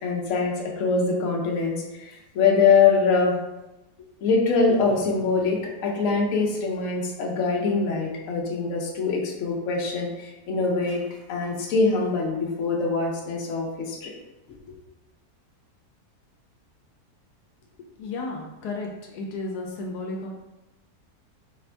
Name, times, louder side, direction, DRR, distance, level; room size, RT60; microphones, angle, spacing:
voice 1, 0.0-3.3 4.2-14.1, left 4 dB, 60° left, -1 dB, 1.0 m, -23 dB
voice 2, 17.8-20.3, left 2 dB, 80° left, 1 dB, 1.2 m, -33 dB
4.2 x 2.6 x 3.3 m, 0.99 s
omnidirectional pair, 1.7 m